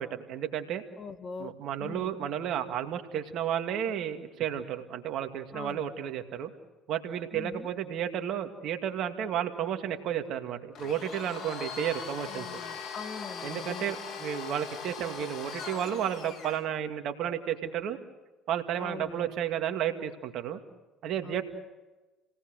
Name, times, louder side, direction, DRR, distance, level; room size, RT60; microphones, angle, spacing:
voice 1, 0.0-0.8 1.4-6.5 6.9-12.5 13.4-18.0 18.5-20.6 21.0-21.4, right 9 dB, 65° right, 6 dB, 2.2 m, -32 dB
voice 2, 1.0-1.5 1.8-2.1 5.5-5.8 7.3-7.7 12.3-14.0 18.8-19.4 21.2-21.4, left 5 dB, 45° left, 10 dB, 1.9 m, -42 dB
Domestic sounds home sounds, 10.7-16.6, left 6 dB, 60° left, 3.0 m, -40 dB
29.5 x 18.5 x 6.5 m, 1.1 s
hypercardioid pair, 65°, 0 cm